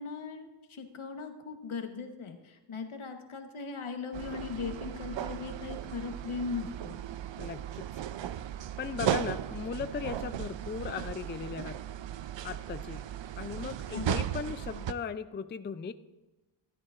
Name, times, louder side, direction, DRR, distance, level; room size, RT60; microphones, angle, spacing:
voice 1, 0.0-6.9 13.9-14.2, left 5 dB, 85° left, 6 dB, 1.2 m, -39 dB
sound 1, 4.1-14.9, right 10 dB, 65° right, 0.5 m, -36 dB
voice 2, 7.4-7.9 8.8-11.8 12.4-13.0 13.4-15.9, left 6 dB, 25° left, 12 dB, 0.3 m, -37 dB
13.0 x 11.5 x 2.5 m, 1.1 s
wide cardioid pair, 95°, 48 cm